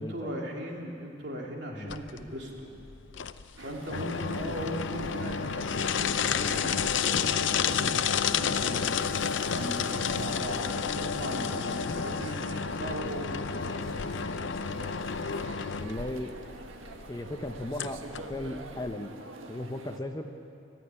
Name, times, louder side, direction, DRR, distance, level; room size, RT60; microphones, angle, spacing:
voice 1, 0.0-2.7 3.5-8.9 9.5-13.7, right 1 dB, 60° right, -1 dB, 3.1 m, -38 dB
sound 1, 1.9-18.9, left 6 dB, 70° left, 0.6 m, -31 dB
sound 2, 3.6-20.0, right 2 dB, 85° right, 1.5 m, -46 dB
voice 2, 15.8-16.3 17.1-19.1 19.5-20.3, left 1 dB, 20° left, 6 dB, 0.7 m, -36 dB
20.0 x 13.5 x 9.8 m, 2.7 s
head